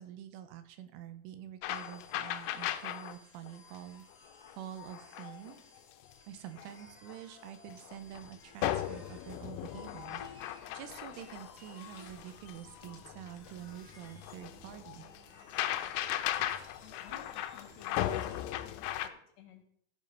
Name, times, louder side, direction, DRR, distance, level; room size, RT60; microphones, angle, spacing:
voice 1, 0.0-4.1 4.6-5.6 6.3-15.1, right 11 dB, 80° right, 9 dB, 3.2 m, -47 dB
sound 1, 1.6-3.2 3.5-3.8 4.4-5.6 6.1-6.2 6.6-6.7 7.1-8.3 8.6-19.1, left 13 dB, 90° left, 3.2 m, -37 dB
sound 2, 1.7-18.5, left 2 dB, 55° left, 1.1 m, -58 dB
sound 3, 7.9-18.7, left 3 dB, 15° left, 2.4 m, -59 dB
voice 2, 16.8-19.6, left 10 dB, 70° left, 3 dB, 2.8 m, -56 dB
15.0 x 5.4 x 5.3 m, 0.69 s
omnidirectional pair, 5.7 m